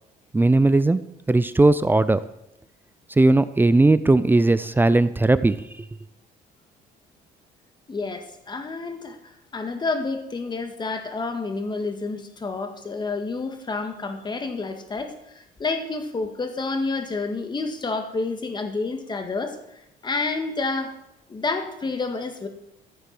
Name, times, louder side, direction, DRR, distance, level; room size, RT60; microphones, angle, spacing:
voice 1, 0.3-1.0 1.3-2.2 3.2-5.9, right 2 dB, 10° right, 14 dB, 0.5 m, -18 dB
voice 2, 7.9-21.0 21.3-22.5, left 3 dB, 25° left, 6 dB, 1.8 m, -29 dB
14.5 x 8.0 x 6.0 m, 0.83 s
cardioid pair, 110°, 17 cm